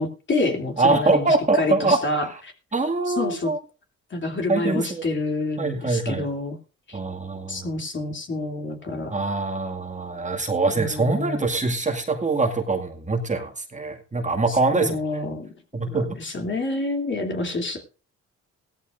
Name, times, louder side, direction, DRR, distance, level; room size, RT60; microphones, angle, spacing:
voice 1, 0.0-2.3 3.1-3.5 4.1-6.6 6.9-7.0 7.5-9.1 10.7-11.5 14.5-15.5 15.8-17.8, left 2 dB, 40° left, 3 dB, 2.8 m, -28 dB
voice 2, 0.8-2.0 2.3-2.4 2.7-3.6 4.5-5.1 5.6-6.3 6.9-7.7 9.1-15.0 15.7-16.1, right 3 dB, 25° right, 3 dB, 2.2 m, -23 dB
17.0 x 13.5 x 2.6 m, 0.33 s
cardioid pair, 90°, 30 cm